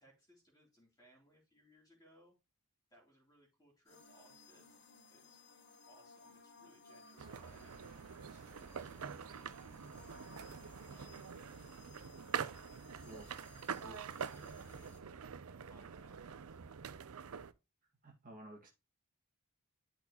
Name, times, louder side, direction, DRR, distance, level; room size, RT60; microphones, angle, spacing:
voice 1, 0.0-2.3 2.9-4.8 5.1-5.4 5.9-7.8 8.3-9.6 10.8-11.3 13.4-16.6, right 1 dB, 15° left, 3.3 m, -66 dB
sound 1, 3.9-15.0, left 3 dB, 50° left, 1.0 m, -61 dB
sound 2, 7.2-17.5, right 7 dB, 80° right, 0.5 m, -45 dB
voice 2, 18.0-18.7, equal, 40° right, 1.9 m, -53 dB
12.0 x 4.1 x 3.0 m
head